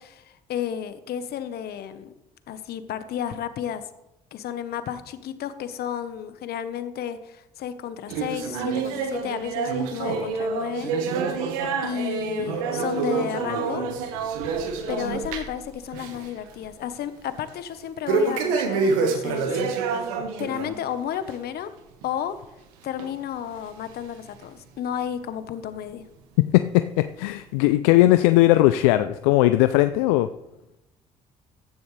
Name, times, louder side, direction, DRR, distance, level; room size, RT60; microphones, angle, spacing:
voice 1, 0.0-2.1 2.5-3.9 4.3-10.9 11.8-13.9 14.9-19.6 20.4-21.7 22.0-22.4 22.8-26.0, left 9 dB, 65° left, 11 dB, 1.2 m, -32 dB
sound 1, 8.1-15.6 15.9-16.3 16.6-16.7 18.1-20.7 21.1-21.3 22.0-22.1 23.0-23.1 23.9-24.0, right 4 dB, 85° right, 1.5 m, -27 dB
voice 2, 26.5-30.3, left 16 dB, 85° left, 11 dB, 0.5 m, -18 dB
15.0 x 11.0 x 3.3 m, 0.91 s
hypercardioid pair, 50°, 17 cm